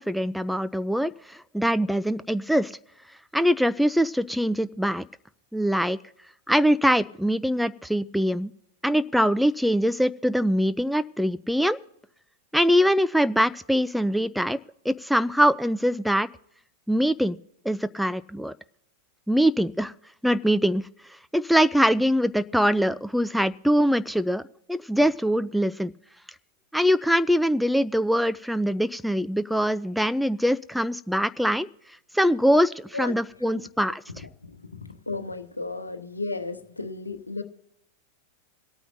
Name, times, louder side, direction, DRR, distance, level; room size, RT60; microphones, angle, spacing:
voice 1, 0.0-2.7 3.3-5.1 5.5-6.0 6.5-8.5 8.8-11.8 12.5-14.6 14.9-16.3 16.9-17.4 17.7-18.5 19.3-19.9 20.2-20.9 21.3-24.4 24.7-25.9 26.7-31.7 32.1-34.0, equal, ahead, 14 dB, 0.3 m, -23 dB
voice 2, 34.1-37.4, left 3 dB, 80° left, 10 dB, 0.9 m, -34 dB
25.5 x 9.1 x 2.6 m, 0.77 s
figure-of-eight pair, 90°, 0 cm